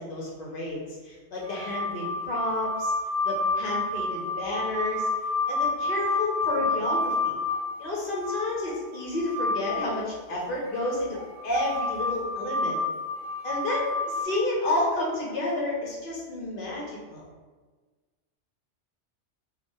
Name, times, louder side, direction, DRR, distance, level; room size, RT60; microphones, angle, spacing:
voice 1, 0.0-2.9 3.2-5.1 5.5-7.4 7.8-12.8 13.4-17.2, left 2 dB, 55° left, -4 dB, 0.8 m, -30 dB
sound 1, 1.4-9.9 10.7-14.2, left 2 dB, 50° right, 1.1 m, -29 dB
3.1 x 2.8 x 2.6 m, 1.4 s
omnidirectional pair, 1.2 m